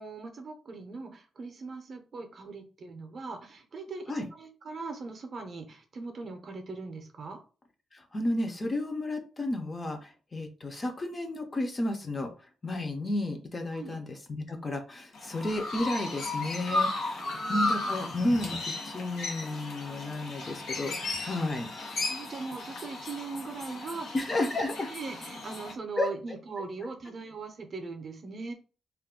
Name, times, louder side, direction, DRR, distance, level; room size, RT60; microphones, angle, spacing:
voice 1, 0.0-7.4 13.7-14.0 17.2-17.9 22.0-28.5, right 4 dB, 40° right, 5 dB, 0.5 m, -40 dB
voice 2, 7.9-12.3 12.6-17.2 17.5-18.6 18.8-21.7 24.1-24.9 26.0-26.1, left 1 dB, 25° left, 4 dB, 0.4 m, -32 dB
Chirp tweet, 15.1-25.7, left 2 dB, 70° left, 0.8 m, -35 dB
2.3 x 2.1 x 3.5 m, 0.36 s
wide cardioid pair, 180°, 0 cm